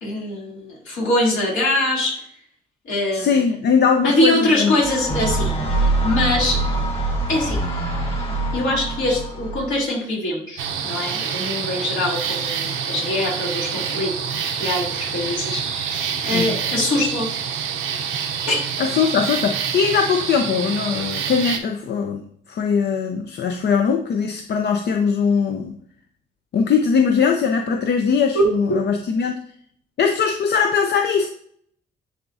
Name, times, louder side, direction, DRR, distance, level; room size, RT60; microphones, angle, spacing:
voice 1, 0.0-2.2 2.8-3.4 4.0-6.6 7.3-7.6 8.5-17.3 18.5-18.6 28.3-28.4, left 1 dB, 75° left, -4 dB, 2.8 m, -23 dB
voice 2, 3.1-4.8 16.3-16.5 18.8-22.2 22.5-25.8 26.5-29.3 30.0-31.3, left 6 dB, 55° left, 4 dB, 0.6 m, -20 dB
sound 1, 4.8-9.8, right 2 dB, 30° left, 2.0 m, -24 dB
sound 2, 10.6-21.6, right 7 dB, 80° right, 0.8 m, -27 dB
10.0 x 3.6 x 2.7 m, 0.62 s
cardioid pair, 90°, 20 cm